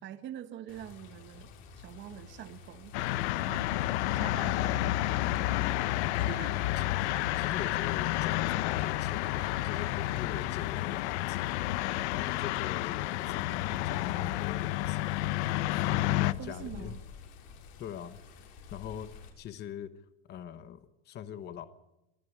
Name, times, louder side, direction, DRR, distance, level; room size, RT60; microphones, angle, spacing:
voice 1, 0.0-1.5 1.7-6.7 7.5-7.7 16.4-17.0, right 11 dB, 35° right, 11 dB, 1.2 m, -46 dB
Water, 0.7-19.3, left 5 dB, 65° left, 6.2 m, -51 dB
sound 1, 2.9-16.3, left 16 dB, 85° left, 1.0 m, -30 dB
voice 2, 7.4-11.5 12.1-15.1 15.7-17.0 17.8-18.2 18.7-19.1 19.4-19.9 20.3-21.7, left 10 dB, 30° left, 12 dB, 1.0 m, -42 dB
24.5 x 14.5 x 9.7 m, 0.94 s
cardioid pair, 160°, 33 cm